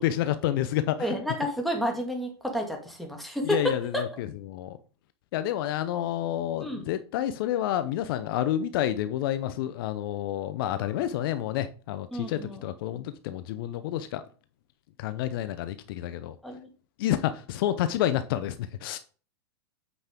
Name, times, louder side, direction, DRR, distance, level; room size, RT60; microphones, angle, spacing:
voice 1, 0.0-1.1 3.5-4.8 5.3-14.2 15.0-16.4 17.0-19.0, left 12 dB, 55° left, 0.7 m, -29 dB
voice 2, 1.0-4.2 6.6-6.8 10.7-11.1 12.1-12.6 16.4-16.7, equal, ahead, 2.0 m, -31 dB
8.2 x 5.5 x 3.7 m
hypercardioid pair, 110°, 14 cm